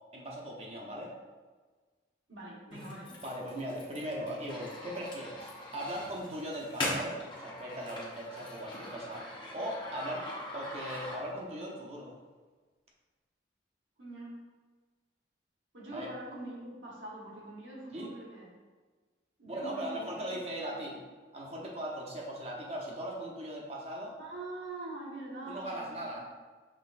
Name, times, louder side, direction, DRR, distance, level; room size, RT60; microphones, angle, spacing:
voice 1, 0.1-1.1 3.2-12.1 15.9-16.1 17.9-18.1 19.5-21.1 21.3-24.2 25.5-26.3, right 1 dB, 35° right, -2 dB, 0.6 m, -39 dB
voice 2, 2.3-3.1 14.0-14.4 15.7-18.5 19.4-20.3 24.2-26.3, right 2 dB, 85° right, -5 dB, 1.3 m, -44 dB
sound 1, 2.7-11.5, left 1 dB, 25° left, 0.7 m, -41 dB
6.0 x 3.1 x 2.5 m, 1.4 s
head